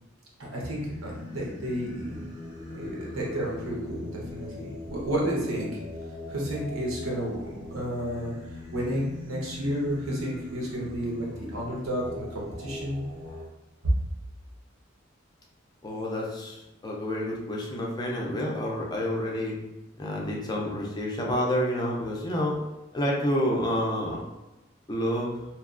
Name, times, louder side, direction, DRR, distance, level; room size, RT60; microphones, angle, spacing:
voice 1, 0.4-2.2 2.7-5.7 6.3-8.3 8.7-13.0 13.8-13.9, right 1 dB, 90° right, -3 dB, 0.8 m, -31 dB
Singing, 0.8-13.4, left 2 dB, 20° right, 0.7 m, -41 dB
voice 2, 15.8-19.6 20.0-22.5 22.9-24.2 24.9-25.3, equal, 20° left, -2 dB, 0.4 m, -29 dB
2.7 x 2.2 x 2.4 m, 0.99 s
head